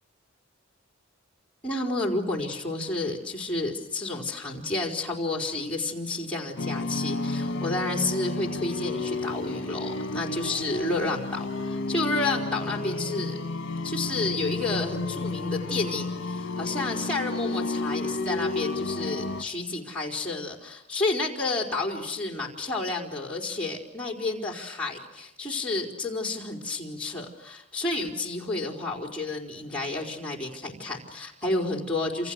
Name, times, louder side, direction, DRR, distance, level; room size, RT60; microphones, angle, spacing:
voice 1, 1.6-13.4 13.8-32.3, left 2 dB, 5° left, -1 dB, 4.4 m, -30 dB
sound 1, 6.6-19.4, left 2 dB, 55° left, 1.3 m, -31 dB
29.0 x 28.0 x 6.5 m, 0.87 s
head